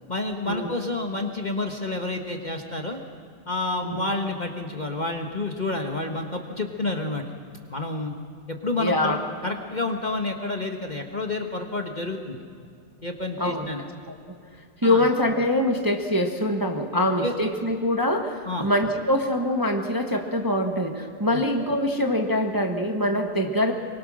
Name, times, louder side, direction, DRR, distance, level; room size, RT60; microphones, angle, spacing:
voice 1, 0.1-3.0 3.5-7.2 7.7-8.1 8.5-12.4 13.0-13.8 14.8-15.0 17.2-17.3 18.4-18.7 21.3-21.4, left 2 dB, 30° left, 3 dB, 1.4 m, -29 dB
voice 2, 8.8-9.2 13.4-14.3 14.8-23.7, left 1 dB, 15° right, 3 dB, 1.3 m, -24 dB
24.0 x 23.5 x 6.4 m, 2.3 s
omnidirectional pair, 1.7 m